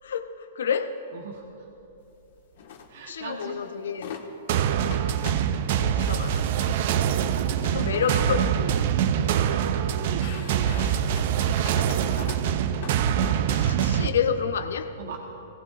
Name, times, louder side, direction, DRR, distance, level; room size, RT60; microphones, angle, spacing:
voice 1, 0.0-1.0 3.1-4.2 5.8-6.7 7.6-8.6 13.5-15.0, left 7 dB, 85° left, 0.8 m, -29 dB
voice 2, 1.1-1.7 2.9-3.6 7.3-8.7 9.0-11.4 15.0-15.2, right 5 dB, 70° right, 1.1 m, -40 dB
sound 1, 2.6-2.9 3.4-3.5 3.9-4.3 4.9-5.5 6.0-6.4 7.1-7.3 7.8-8.5 8.8-9.5 9.9-13.4, left 7 dB, 65° left, 1.5 m, -42 dB
sound 2, 4.5-14.1, right 9 dB, 55° right, 0.5 m, -24 dB
19.5 x 18.0 x 2.5 m
hypercardioid pair, 140°, 0 cm